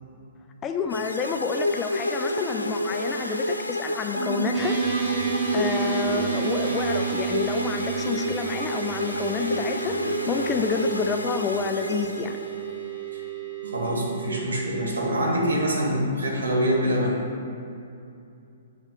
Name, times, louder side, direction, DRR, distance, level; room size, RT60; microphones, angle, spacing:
voice 1, 0.6-4.8 5.1-5.2 5.5-12.4, left 6 dB, 20° left, 5 dB, 0.4 m, -29 dB
sound 1, 0.9-12.7, left 1 dB, 85° left, 0.4 m, -30 dB
Piano, 4.2-10.4, right 6 dB, 40° right, 0.7 m, -30 dB
sound 2, 4.5-15.6, right 7 dB, 25° right, 1.3 m, -35 dB
voice 2, 13.6-17.2, equal, 65° right, -2 dB, 1.6 m, -25 dB
7.2 x 3.2 x 6.0 m, 2.6 s
figure-of-eight pair, 120°, 0 cm